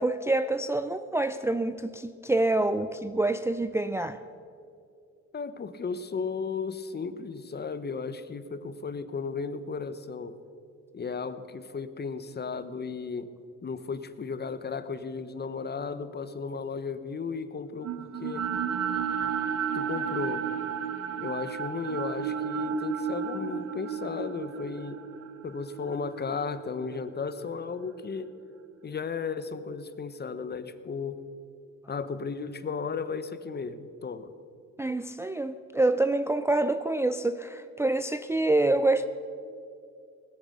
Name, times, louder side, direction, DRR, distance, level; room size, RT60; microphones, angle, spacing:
voice 1, 0.0-4.2 34.8-39.0, right 2 dB, 10° right, 10 dB, 0.4 m, -26 dB
voice 2, 5.3-10.4 10.9-13.3 13.6-18.5 19.7-20.5 21.2-25.0 25.4-28.3 28.8-31.2 31.9-34.3, left 5 dB, 35° left, 12 dB, 0.9 m, -35 dB
sound 1, 17.8-28.0, right 7 dB, 55° right, 0.9 m, -33 dB
18.5 x 8.0 x 6.5 m, 2.4 s
cardioid pair, 90°, 30 cm